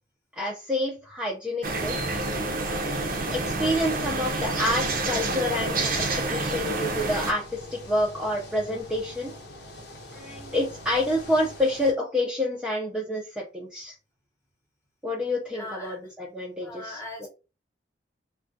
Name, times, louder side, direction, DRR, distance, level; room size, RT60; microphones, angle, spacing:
voice 1, 0.3-2.0 2.6-7.4 7.7-9.3 10.1-13.9 15.0-17.3, left 1 dB, 5° right, 0.5 m, -28 dB
sound 1, 1.6-7.3, right 2 dB, 50° right, 0.6 m, -28 dB
sound 2, 2.7-11.9, equal, 60° left, 0.8 m, -44 dB
voice 2, 15.5-16.0 16.6-17.3, left 1 dB, 15° left, 0.9 m, -39 dB
3.4 x 2.2 x 2.6 m
head